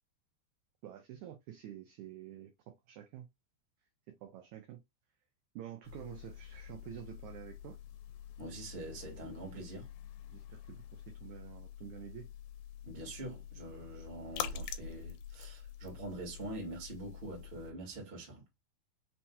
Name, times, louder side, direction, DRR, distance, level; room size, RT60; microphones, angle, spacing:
voice 1, 0.8-3.3 4.2-4.8 5.6-7.8 10.3-12.3, right 11 dB, 80° right, 1.7 m, -49 dB
sound 1, 5.8-17.7, left 8 dB, 85° left, 2.4 m, -46 dB
voice 2, 8.4-9.9 12.8-18.4, right 2 dB, 35° right, 0.9 m, -44 dB
5.8 x 2.7 x 2.2 m
omnidirectional pair, 4.0 m